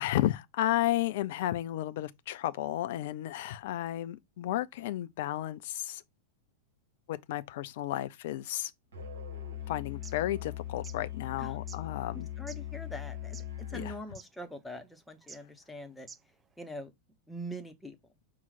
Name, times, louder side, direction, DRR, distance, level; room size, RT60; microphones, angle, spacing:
voice 1, 0.0-6.0 7.1-8.7 9.7-12.3 13.7-13.8, left 14 dB, 55° left, 0.4 m, -33 dB
Musical instrument, 8.9-14.1, left 11 dB, 65° right, 1.4 m, -40 dB
sound 1, 9.8-10.1 10.7-11.0 11.7-11.8 12.5-12.6 13.2-13.6 13.8-13.9 14.1-14.3 15.2-15.4 16.0-16.3, right 5 dB, 20° right, 0.4 m, -48 dB
voice 2, 12.1-13.4 13.7-16.1 16.6-16.9 17.3-18.0, equal, 5° left, 0.9 m, -43 dB
5.7 x 2.3 x 4.1 m
figure-of-eight pair, 90°, 0 cm